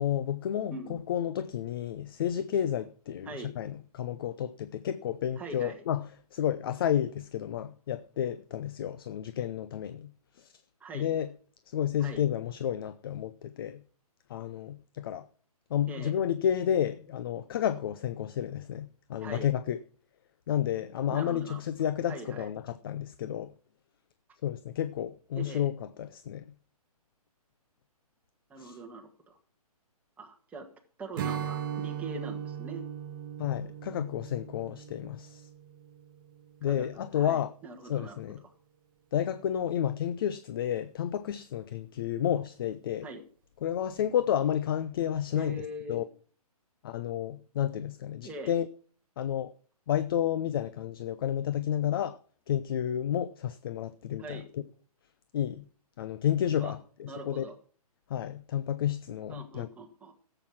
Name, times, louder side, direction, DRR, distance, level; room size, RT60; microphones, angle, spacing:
voice 1, 0.0-10.6 10.9-11.3 11.7-13.8 14.3-15.3 15.7-19.8 20.5-23.5 24.4-26.4 28.6-28.8 33.4-35.5 36.6-37.5 37.8-38.4 39.1-43.1 43.6-46.0 46.8-48.7 49.2-49.5 49.9-52.2 52.5-54.6 55.3-55.7 56.0-57.5 58.1-59.7, left 10 dB, 35° left, 0.6 m, -31 dB
voice 2, 0.7-1.0 3.2-3.5 5.4-5.8 10.8-11.1 12.0-12.2 15.9-16.1 19.2-19.5 21.1-21.6 22.1-22.5 25.3-25.7 28.5-29.4 30.2-30.7 31.0-32.8 36.6-38.2 43.0-43.2 45.3-46.0 48.2-48.5 54.2-54.5 56.6-56.7 57.0-57.5 59.3-60.1, right 2 dB, 5° right, 1.6 m, -42 dB
Strum, 31.2-36.6, right 8 dB, 35° right, 0.9 m, -38 dB
12.5 x 7.8 x 5.8 m
hypercardioid pair, 155°, 20 cm